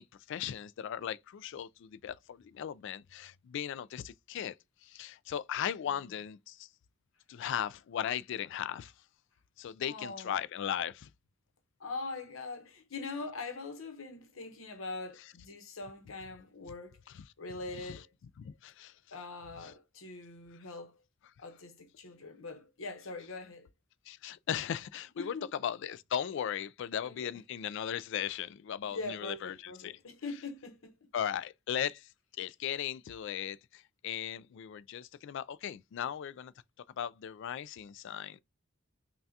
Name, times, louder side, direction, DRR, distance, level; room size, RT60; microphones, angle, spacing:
voice 1, 0.0-4.5 4.8-6.7 7.3-8.9 9.6-11.1 17.9-18.0 18.4-18.9 19.6-19.7 24.1-25.3 25.6-29.9 31.1-32.1 32.4-36.5 37.0-38.4, left 9 dB, 60° left, 0.3 m, -37 dB
voice 2, 9.8-10.4 11.8-17.0 17.4-18.1 19.1-21.0 21.4-23.7 25.2-25.5 27.0-27.3 28.8-31.1, left 3 dB, 75° left, 0.9 m, -42 dB
5.6 x 2.3 x 2.7 m
head